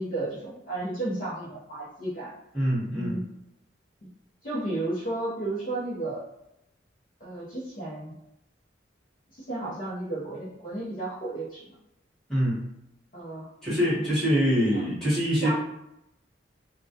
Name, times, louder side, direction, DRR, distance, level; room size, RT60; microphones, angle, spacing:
voice 1, 0.0-2.3 2.9-3.2 4.4-6.3 7.2-8.2 9.3-11.8 13.1-13.5 14.7-14.9 15.4-15.5, right 2 dB, 45° left, -8 dB, 0.6 m, -33 dB
voice 2, 2.5-3.2 12.3-12.6 13.6-15.5, equal, ahead, -11 dB, 1.0 m, -24 dB
2.2 x 2.1 x 2.7 m, 0.84 s
head